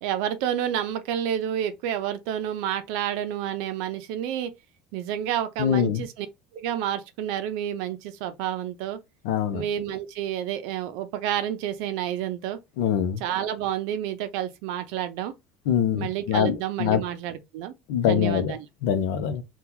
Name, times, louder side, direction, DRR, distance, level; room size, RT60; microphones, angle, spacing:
voice 1, 0.0-4.5 4.9-6.3 6.5-9.0 9.5-12.6 13.2-15.3 16.0-17.7 18.1-18.7, right 10 dB, 65° right, 0.5 m, -29 dB
voice 2, 5.6-6.0 9.2-9.6 12.8-13.2 15.7-17.0 17.9-18.5 18.8-19.4, left 9 dB, 85° left, 0.6 m, -24 dB
2.9 x 2.3 x 3.7 m
cardioid pair, 175°, 0 cm